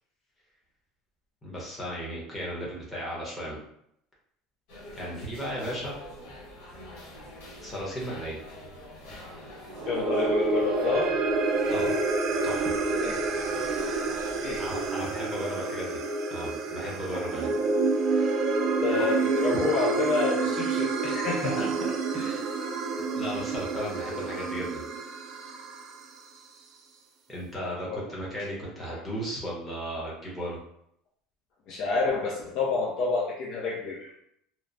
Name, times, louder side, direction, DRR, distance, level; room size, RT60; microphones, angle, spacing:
voice 1, 1.4-3.6 4.9-6.0 7.6-8.4 11.7-11.9 12.4-12.7 14.6-16.0 16.3-17.5 18.9-19.0 21.4-21.7 22.1-22.5 23.2-24.8 27.3-30.6, equal, 15° left, -5 dB, 1.0 m, -35 dB
sound 1, 4.7-14.9, left 1 dB, 80° left, 1.2 m, -46 dB
sound 2, 9.7-26.2, right 3 dB, 45° right, 0.4 m, -28 dB
voice 2, 9.8-11.2 13.0-13.2 14.4-14.7 17.1-17.2 18.8-21.7 22.6-22.9 27.9-28.1 31.7-34.2, left 4 dB, 50° left, -3 dB, 0.5 m, -29 dB
2.9 x 2.1 x 2.6 m, 0.72 s
cardioid pair, 135°, 0 cm